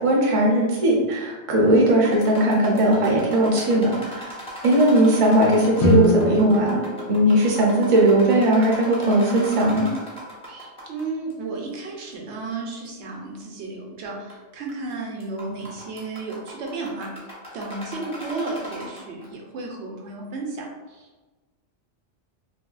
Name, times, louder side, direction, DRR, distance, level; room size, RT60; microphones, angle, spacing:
voice 1, 0.0-4.3 4.6-9.9, right 1 dB, 40° right, -2 dB, 0.5 m, -19 dB
sound 1, 2.0-11.0 11.3-11.4 12.1-12.2 12.8-12.9 14.1-14.3 14.7-14.9 15.2-19.2, equal, 5° left, 0.6 m, -38 dB
Guitar, 5.8-8.4, left 1 dB, 75° left, 0.9 m, -24 dB
voice 2, 10.5-17.1 17.5-21.2, right 3 dB, 75° right, 0 dB, 0.9 m, -33 dB
2.8 x 2.6 x 2.3 m, 1.2 s
omnidirectional pair, 1.2 m